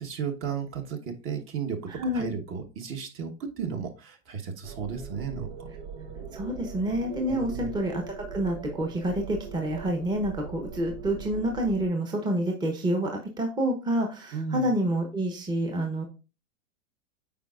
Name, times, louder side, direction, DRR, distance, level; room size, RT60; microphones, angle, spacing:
voice 1, 0.0-5.7 7.3-7.7 14.3-14.7, right 6 dB, 35° right, 4 dB, 1.2 m, -34 dB
voice 2, 1.9-2.3 6.3-16.0, right 1 dB, 10° right, 2 dB, 0.9 m, -28 dB
sound 1, 4.6-11.9, right 6 dB, 60° right, 1.0 m, -40 dB
8.5 x 4.6 x 2.4 m, 0.33 s
hypercardioid pair, 120°, 38 cm